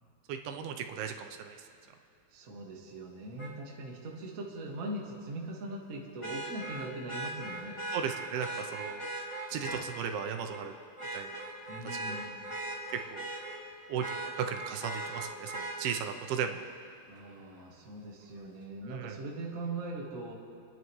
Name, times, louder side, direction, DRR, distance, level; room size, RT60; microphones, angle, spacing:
voice 1, 0.3-1.7 7.9-9.1 9.5-10.7 11.1-11.4 11.9-12.2 13.1-13.4 13.9-16.7 18.9-19.2, right 7 dB, 85° right, 5 dB, 2.6 m, -36 dB
voice 2, 2.3-7.8 11.7-12.5 17.1-20.3, right 2 dB, 55° right, -2 dB, 0.8 m, -41 dB
Vehicle horn car horn honking, 3.4-3.5 6.2-9.8 10.4-10.6 11.0-13.6 14.0-15.8 17.6-17.7, right 2 dB, 15° left, 0.9 m, -39 dB
28.0 x 10.5 x 3.2 m, 2.6 s
omnidirectional pair, 4.5 m